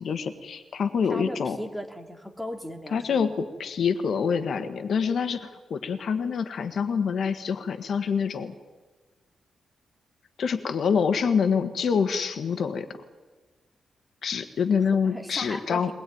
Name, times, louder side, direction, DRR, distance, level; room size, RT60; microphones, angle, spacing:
voice 1, 0.0-1.6 2.9-8.5 10.4-12.9 14.2-15.9, left 6 dB, 60° left, 9 dB, 1.5 m, -26 dB
voice 2, 1.1-3.2 15.0-15.9, equal, ahead, 3 dB, 2.4 m, -37 dB
22.5 x 20.0 x 9.4 m, 1.3 s
wide cardioid pair, 150°, 0 cm